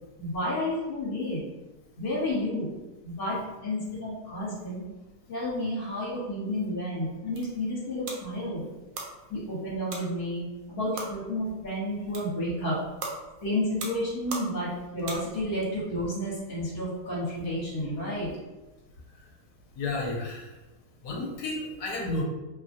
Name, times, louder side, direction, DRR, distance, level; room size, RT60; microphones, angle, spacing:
voice 1, 0.2-1.4 2.0-2.7 3.0-3.4 3.6-4.8 5.3-8.6 9.3-10.4 10.7-12.8 13.4-18.3, left 1 dB, 50° left, -7 dB, 1.5 m, -31 dB
sound 1, 7.0-15.7, right 3 dB, 75° right, 1.1 m, -42 dB
voice 2, 19.8-20.5 21.0-22.2, left 2 dB, 75° left, -2 dB, 1.2 m, -31 dB
3.0 x 2.3 x 2.6 m, 1.1 s
omnidirectional pair, 1.7 m